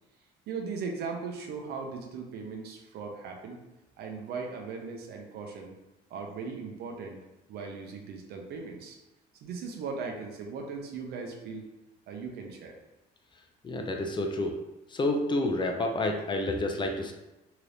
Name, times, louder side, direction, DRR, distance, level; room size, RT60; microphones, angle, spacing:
voice 1, 0.5-3.6 4.0-5.7 6.1-7.2 7.5-9.0 9.4-11.6 12.1-12.8, right 5 dB, 70° right, 2 dB, 0.7 m, -38 dB
voice 2, 13.6-14.6 14.9-17.1, left 2 dB, 30° left, 3 dB, 0.4 m, -29 dB
2.9 x 2.4 x 3.3 m, 0.98 s
cardioid pair, 110°, 17 cm